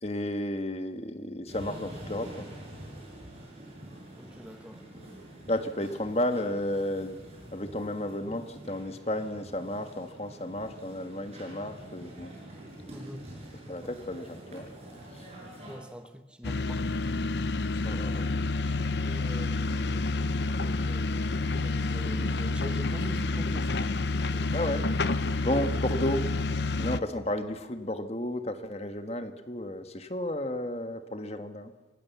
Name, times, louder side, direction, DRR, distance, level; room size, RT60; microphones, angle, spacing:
voice 1, 0.0-2.5 5.5-7.2 7.5-12.3 13.7-14.7 15.1-15.3 17.8-18.3 24.5-26.3 26.8-31.7, left 1 dB, 35° left, 1.5 m, -33 dB
Tokyo - Hiroo street, 1.5-15.8, right 1 dB, 35° right, 7.6 m, -46 dB
voice 2, 4.1-4.9 12.9-13.3 15.7-17.2 19.0-24.6, equal, 5° right, 1.2 m, -44 dB
sound 1, 16.4-27.0, left 3 dB, 80° left, 0.7 m, -29 dB
26.5 x 19.0 x 7.2 m
head